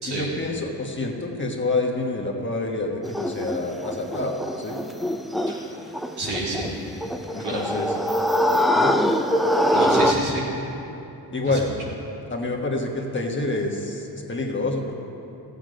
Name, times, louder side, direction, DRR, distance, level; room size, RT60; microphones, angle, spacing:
voice 1, 0.1-4.8 7.3-8.0 8.7-9.0 11.3-11.7 12.3-15.0, left 2 dB, 30° left, 0 dB, 1.3 m, -27 dB
sound 1, 3.0-10.1, equal, ahead, 0.5 m, -23 dB
voice 2, 6.2-6.7 7.4-7.6 9.7-10.4 11.5-11.6, right 2 dB, 80° right, -6 dB, 3.2 m, -29 dB
15.0 x 8.1 x 5.1 m, 3.0 s
cardioid pair, 105°, 40 cm